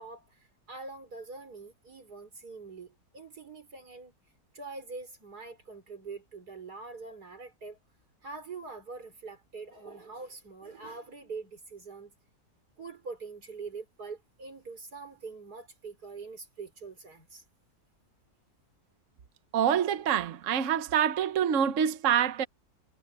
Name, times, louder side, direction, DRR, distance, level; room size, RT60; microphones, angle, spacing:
voice 1, 0.0-4.1 4.5-7.8 8.2-12.1 12.8-17.4, right 4 dB, 85° right, 5.1 m, -44 dB
voice 2, 19.5-22.5, right 9 dB, 60° right, 1.2 m, -26 dB
omnidirectional pair, 1.6 m